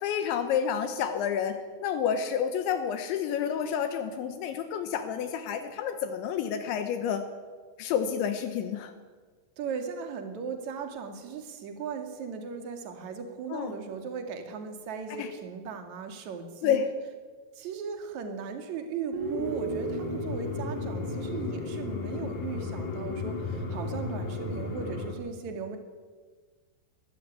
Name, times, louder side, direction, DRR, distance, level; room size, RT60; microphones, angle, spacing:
voice 1, 0.0-7.3 7.8-8.9 13.5-13.8 15.2-15.3 16.6-16.9, left 8 dB, 80° left, 8 dB, 3.4 m, -29 dB
voice 2, 9.6-16.8 17.5-25.8, right 6 dB, 45° right, 5 dB, 3.0 m, -37 dB
Guitar, 19.1-23.1, right 4 dB, 80° right, 5.5 m, -37 dB
sound 1, 19.2-25.1, left 3 dB, 45° left, 3.7 m, -34 dB
22.0 x 14.0 x 9.6 m, 1.5 s
omnidirectional pair, 5.4 m